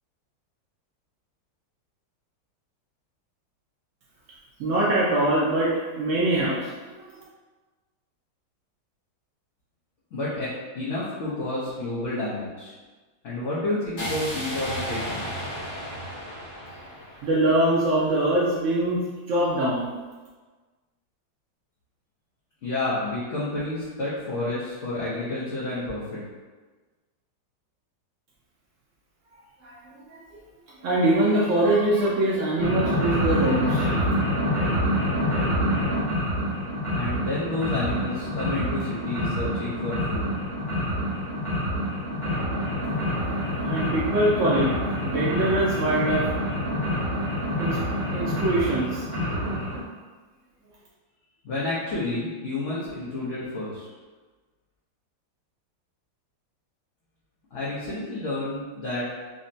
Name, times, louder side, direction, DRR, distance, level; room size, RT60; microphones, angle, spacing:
voice 1, 4.6-7.2 17.2-19.9 29.6-30.4 30.8-34.1 43.6-44.8 45.0-46.3 47.6-47.8 48.1-49.1, right 1 dB, 85° right, -5 dB, 0.6 m, -23 dB
voice 2, 10.1-12.7 13.2-15.3 22.6-26.2 37.0-40.3 51.4-53.9 57.5-59.1, left 2 dB, 55° left, -9 dB, 0.8 m, -30 dB
sound 1, 14.0-18.0, equal, 70° left, 1.8 m, -34 dB
sound 2, 32.6-49.8, equal, 20° left, 0.7 m, -27 dB
5.2 x 2.1 x 2.6 m, 1.3 s
omnidirectional pair, 2.0 m